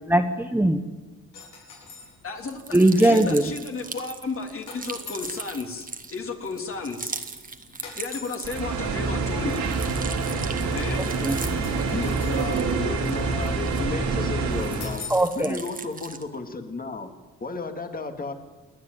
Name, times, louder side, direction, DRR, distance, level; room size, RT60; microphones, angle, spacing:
voice 1, 0.1-0.8 2.7-3.5 11.0-11.4 15.1-15.6, right 1 dB, 5° right, 6 dB, 1.3 m, -20 dB
sound 1, 1.3-2.2 4.7-5.5 7.8-8.5 11.6-12.6 14.8-15.3, left 5 dB, 80° left, 7.5 m, -42 dB
voice 2, 2.2-7.2 7.8-9.7 10.2-11.1, left 4 dB, 45° left, 3 dB, 3.3 m, -34 dB
sound 2, 2.4-8.9 9.2-14.1 14.5-16.3, right 4 dB, 30° right, 1.8 m, -39 dB
voice 3, 2.8-3.4 11.9-15.1 15.4-17.1 17.4-18.3, left 3 dB, 30° left, 7 dB, 2.3 m, -33 dB
sound 3, 8.4-15.0, right 4 dB, 70° right, 3.4 m, -26 dB
29.0 x 10.5 x 9.3 m, 1.3 s
cardioid pair, 90°, 30 cm